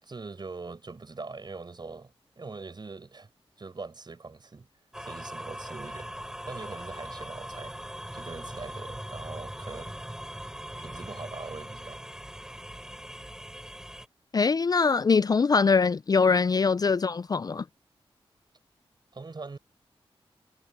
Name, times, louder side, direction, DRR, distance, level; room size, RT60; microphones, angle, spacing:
voice 1, 0.0-3.3 3.6-4.7 5.0-6.1 6.5-7.8 8.1-10.0 10.4-10.5 10.8-12.1 19.1-19.6, right 3 dB, 45° right, 4.9 m, -42 dB
sound 1, 4.9-14.1, equal, 5° right, 3.4 m, -40 dB
voice 2, 14.3-17.6, left 5 dB, 40° left, 0.4 m, -23 dB
cardioid pair, 60°, 10 cm